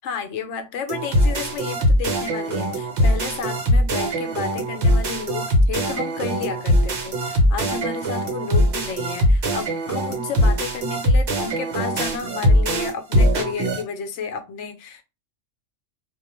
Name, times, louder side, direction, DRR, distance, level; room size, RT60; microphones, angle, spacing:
voice 1, 0.0-15.0, left 5 dB, 70° left, 7 dB, 0.8 m, -32 dB
sound 1, 0.9-13.8, equal, 65° right, 1.0 m, -21 dB
2.3 x 2.1 x 2.9 m, 0.27 s
omnidirectional pair, 1.3 m